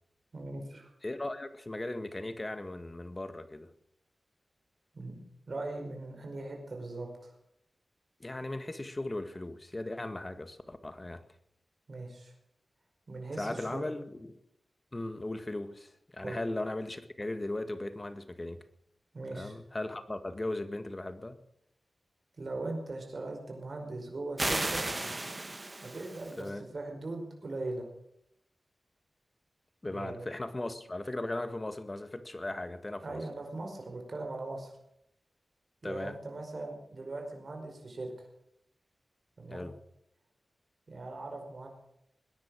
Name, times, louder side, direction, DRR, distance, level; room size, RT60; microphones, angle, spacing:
voice 1, 0.3-0.9 4.9-5.2 5.5-7.3 11.9-12.3 13.1-13.9 16.2-16.4 19.1-19.5 22.4-24.9 25.8-27.9 29.9-30.3 33.0-34.7 35.8-38.3 39.4-39.7 40.9-41.7, right 2 dB, 60° right, 2 dB, 5.1 m, -40 dB
voice 2, 1.0-3.7 8.2-11.2 13.4-14.4 14.9-18.6 19.3-21.4 26.4-26.6 29.8-33.2 35.8-36.2 39.5-39.7, left 2 dB, 30° left, 10 dB, 1.8 m, -37 dB
sound 1, 24.4-26.4, right 2 dB, 30° right, 1.6 m, -34 dB
21.0 x 10.5 x 6.3 m, 0.77 s
cardioid pair, 55°, 0 cm